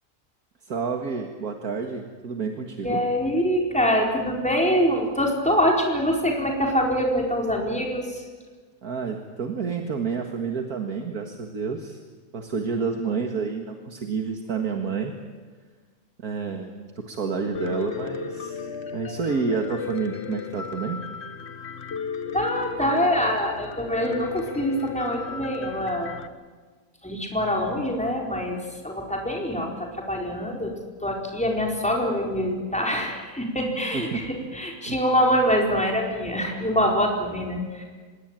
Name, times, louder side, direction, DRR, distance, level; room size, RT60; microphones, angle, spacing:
voice 1, 0.6-3.0 8.8-12.0 12.3-15.1 16.2-18.6 18.9-21.0 33.9-34.2 34.8-35.0, right 5 dB, 65° right, 3 dB, 2.3 m, -29 dB
voice 2, 2.8-8.2 22.3-26.1 27.0-28.6 28.8-30.7 31.0-37.8, equal, 5° left, 0 dB, 4.5 m, -24 dB
Piano, 17.5-26.3, left 6 dB, 45° left, 1.3 m, -35 dB
25.5 x 21.0 x 9.0 m, 1.4 s
omnidirectional pair, 1.7 m